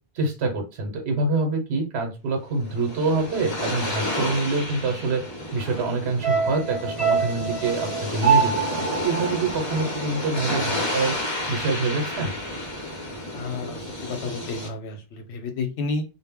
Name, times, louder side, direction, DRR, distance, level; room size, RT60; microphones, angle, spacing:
voice 1, 0.2-5.2 5.5-11.2 11.5-12.3, right 3 dB, 80° right, 3 dB, 1.0 m, -26 dB
sound 1, 2.4-14.7, left 1 dB, 30° left, 0.6 m, -31 dB
sound 2, 6.2-10.6 10.9-11.0, right 6 dB, 45° right, 0.8 m, -25 dB
voice 2, 13.3-16.0, left 3 dB, 90° left, 6 dB, 0.9 m, -31 dB
2.1 x 2.1 x 3.4 m, 0.29 s
omnidirectional pair, 1.1 m